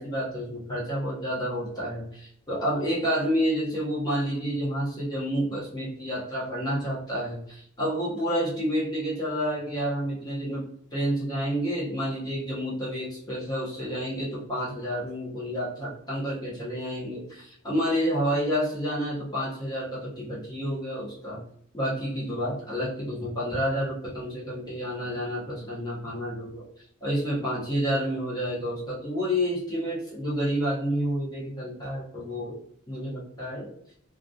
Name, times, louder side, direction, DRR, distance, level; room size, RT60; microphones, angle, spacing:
voice 1, 0.0-10.7 10.9-21.4 21.7-26.7 27.0-32.6 32.9-33.7, equal, 20° left, -8 dB, 0.6 m, -29 dB
2.2 x 2.2 x 2.5 m, 0.64 s
head